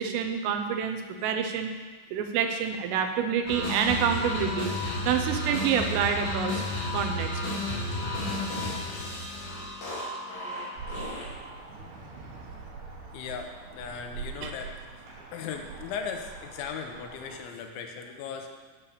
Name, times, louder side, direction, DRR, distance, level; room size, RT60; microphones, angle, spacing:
voice 1, 0.0-1.7 2.1-4.7 5.0-6.6 6.9-7.3 14.4-14.5, right 7 dB, 85° right, 6 dB, 3.4 m, -27 dB
sound 1, 3.5-11.5, left 1 dB, 35° left, 3.9 m, -32 dB
sound 2, 10.7-17.4, right 4 dB, 60° right, 3.4 m, -43 dB
voice 2, 13.1-14.7 15.3-18.6, left 6 dB, 80° left, 4 dB, 3.0 m, -37 dB
9.0 x 6.9 x 7.1 m, 1.3 s
omnidirectional pair, 5.8 m